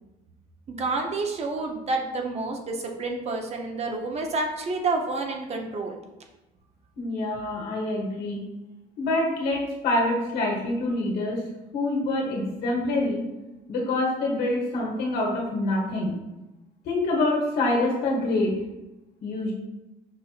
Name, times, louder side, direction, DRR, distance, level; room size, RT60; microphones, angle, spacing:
voice 1, 0.7-6.0, right 3 dB, 40° right, 2 dB, 0.7 m, -29 dB
voice 2, 7.0-8.4 9.0-11.4 11.7-13.2 13.7-16.1 16.8-18.6 19.2-19.5, left 2 dB, 75° left, -2 dB, 1.2 m, -26 dB
6.1 x 2.6 x 2.4 m, 1.0 s
cardioid pair, 110°, 17 cm